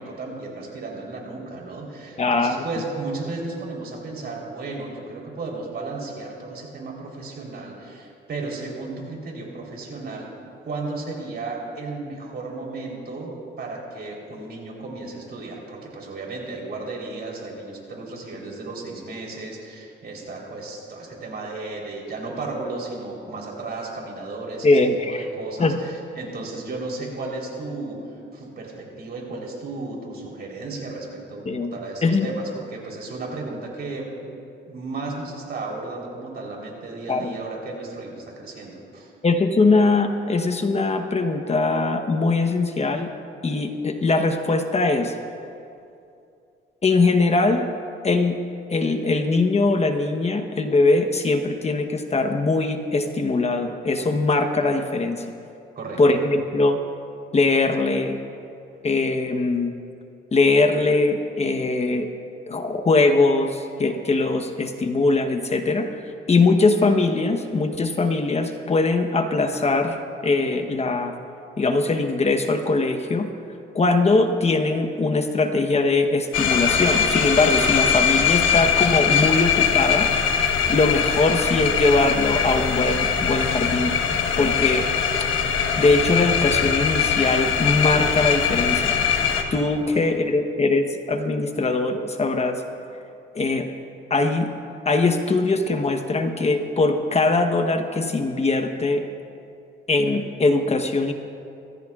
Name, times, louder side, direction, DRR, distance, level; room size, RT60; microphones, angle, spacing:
voice 1, 0.0-10.3 10.6-24.8 25.0-34.3 34.7-39.1 55.8-56.0 89.8-90.1, right 3 dB, 55° right, -1 dB, 3.8 m, -34 dB
voice 2, 2.2-2.6 24.6-25.3 25.6-25.8 31.5-31.7 32.0-32.3 37.1-37.3 39.2-43.1 43.4-45.1 46.8-47.7 48.0-48.4 48.7-55.2 56.0-56.8 57.3-58.2 58.8-59.7 60.3-62.1 62.5-66.0 66.3-71.1 71.6-73.3 73.7-80.1 80.7-83.9 84.4-84.9 85.8-89.0 89.5-92.6 93.3-93.7 94.1-94.5 94.8-99.0 99.9-101.1, left 3 dB, 30° left, 6 dB, 1.0 m, -21 dB
sound 1, 76.3-89.4, left 7 dB, 85° left, 1.2 m, -21 dB
24.0 x 15.0 x 2.4 m, 2.6 s
cardioid pair, 90°, 20 cm